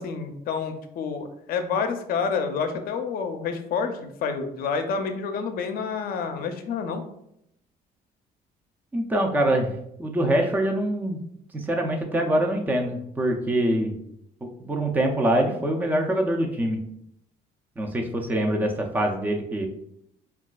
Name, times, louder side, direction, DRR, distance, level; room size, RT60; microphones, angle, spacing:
voice 1, 0.0-7.0, left 5 dB, 60° left, 7 dB, 0.5 m, -28 dB
voice 2, 8.9-9.7 10.0-11.2 11.5-14.0 14.4-16.8 17.8-19.7, right 1 dB, 10° right, 3 dB, 0.4 m, -24 dB
3.9 x 2.3 x 2.3 m, 0.76 s
cardioid pair, 110°, 17 cm